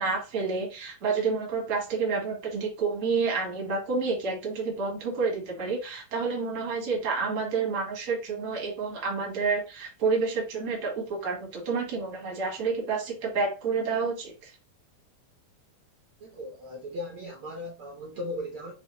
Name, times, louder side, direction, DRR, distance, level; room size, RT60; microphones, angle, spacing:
voice 1, 0.0-14.5, right 4 dB, 55° right, 0.8 m, -29 dB
voice 2, 16.2-18.7, left 1 dB, 90° right, 1.1 m, -37 dB
5.5 x 2.3 x 4.2 m
omnidirectional pair, 4.0 m